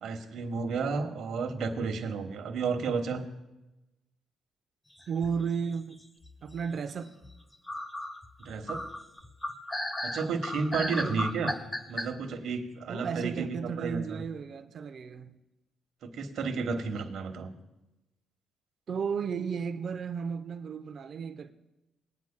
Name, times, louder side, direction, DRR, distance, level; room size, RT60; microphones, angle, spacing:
voice 1, 0.0-3.2 8.4-8.8 10.0-11.5 11.9-14.2 16.0-17.5, right 4 dB, 70° right, 1.2 m, -32 dB
sound 1, 5.0-5.8 6.2-6.8 7.2-7.3 7.7-12.1, left 1 dB, 20° left, 1.0 m, -35 dB
voice 2, 5.1-6.1 6.4-7.2 10.7-11.3 12.9-15.3 18.9-21.5, right 6 dB, 55° right, 0.7 m, -34 dB
20.0 x 9.6 x 2.2 m
cardioid pair, 90°, 0 cm